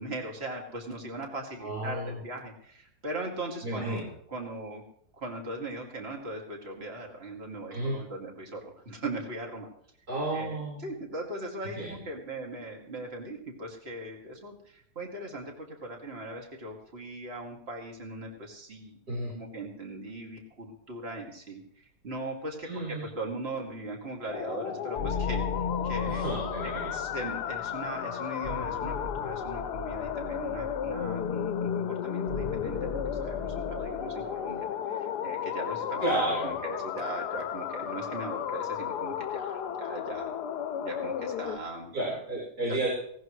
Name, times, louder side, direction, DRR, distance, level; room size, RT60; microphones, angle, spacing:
voice 1, 0.0-4.0 4.3-4.8 5.1-9.7 10.3-19.0 19.3-21.6 22.0-26.3 26.9-40.3 40.8-41.9, right 2 dB, 40° right, 0 dB, 2.7 m, -39 dB
voice 2, 1.6-2.1 3.6-4.1 7.7-8.0 10.1-10.9 11.8-11.9 19.1-19.3 22.6-23.0 26.1-26.9 36.0-36.5 41.9-42.9, right 1 dB, 65° right, -5 dB, 5.2 m, -32 dB
sound 1, 24.3-41.6, left 9 dB, 80° left, 1.3 m, -34 dB
sound 2, 25.0-34.1, left 4 dB, 45° left, 1.2 m, -36 dB
19.0 x 17.5 x 3.2 m, 0.65 s
omnidirectional pair, 1.7 m